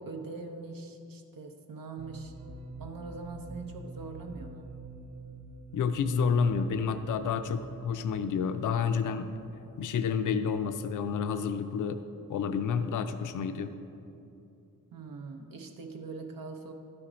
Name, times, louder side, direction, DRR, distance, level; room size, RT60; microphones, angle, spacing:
voice 1, 0.0-2.4 2.8-4.7 14.9-16.7, right 3 dB, 80° right, 4 dB, 0.7 m, -42 dB
sound 1, 2.0-11.6, right 3 dB, 20° right, 0.5 m, -47 dB
voice 2, 5.7-9.3 9.8-12.0 12.3-13.7, left 6 dB, 65° left, 9 dB, 0.5 m, -29 dB
12.0 x 4.4 x 4.9 m, 2.6 s
wide cardioid pair, 140°, 34 cm